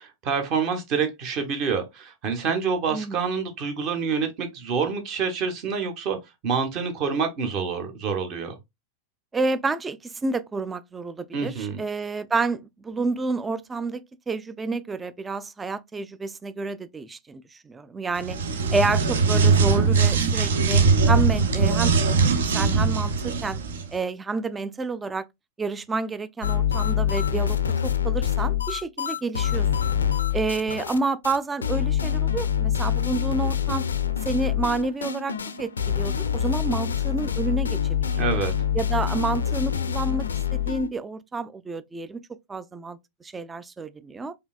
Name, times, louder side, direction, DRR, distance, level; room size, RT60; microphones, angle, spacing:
voice 1, 0.0-6.2 6.4-8.5 11.3-11.8 38.2-38.5, right 5 dB, 40° right, 1.0 m, -27 dB
voice 2, 2.9-3.3 9.3-18.4 18.7-21.9 22.2-23.6 23.9-25.3 25.6-29.9 30.3-33.8 34.2-38.2 38.7-40.3 40.5-42.2 42.5-44.4, right 3 dB, 15° right, 0.3 m, -29 dB
sound 1, 18.2-23.9, right 4 dB, 65° right, 0.5 m, -21 dB
sound 2, 26.4-31.0 31.2-31.4 31.6-40.9, left 9 dB, 70° left, 0.4 m, -25 dB
4.9 x 2.6 x 2.3 m
figure-of-eight pair, 90°, 0 cm